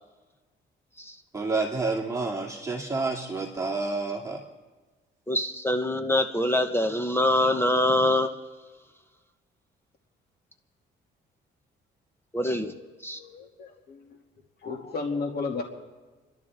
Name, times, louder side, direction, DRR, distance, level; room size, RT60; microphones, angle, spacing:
voice 1, 1.3-4.4, right 3 dB, 15° right, -2 dB, 2.3 m, -29 dB
voice 2, 5.3-8.3 12.3-12.7 13.0-13.2, left 1 dB, 10° left, 7 dB, 1.0 m, -24 dB
voice 3, 13.1-14.2 14.6-15.6, left 4 dB, 55° left, 0 dB, 2.5 m, -34 dB
29.0 x 12.0 x 3.6 m, 1.3 s
cardioid pair, 90°, 20 cm